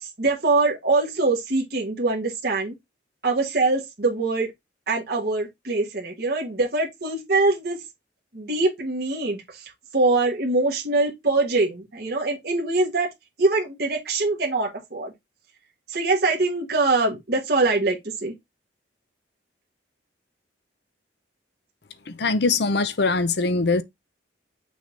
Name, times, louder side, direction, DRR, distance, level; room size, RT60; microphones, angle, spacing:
voice 1, 0.0-2.7 3.2-4.5 4.9-7.8 8.3-13.1 13.4-15.1 15.9-18.3, right 3 dB, 55° right, 1.4 m, -23 dB
voice 2, 22.1-23.8, left 3 dB, 60° left, 0.7 m, -22 dB
6.3 x 2.9 x 5.1 m
head